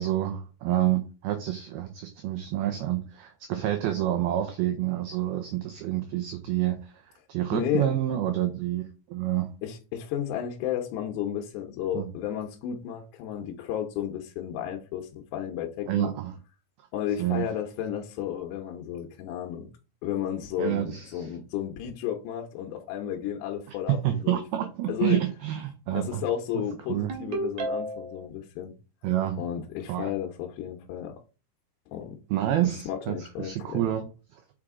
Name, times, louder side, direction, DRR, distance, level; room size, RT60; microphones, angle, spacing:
voice 1, 0.0-7.0 7.3-9.5 11.9-12.1 15.9-16.4 17.2-17.4 20.6-21.3 23.9-26.2 26.9-27.1 29.0-29.4 29.9-30.1 32.3-34.1, right 13 dB, 85° right, 2.1 m, -28 dB
voice 2, 7.5-7.9 9.6-16.1 16.9-19.7 20.0-24.4 24.9-25.2 25.9-28.7 29.4-31.1 31.9-32.2 32.6-33.8, left 10 dB, 80° left, 2.8 m, -33 dB
Ringtone, 27.1-28.3, right 2 dB, 60° right, 2.1 m, -32 dB
6.2 x 4.9 x 3.6 m
omnidirectional pair, 5.2 m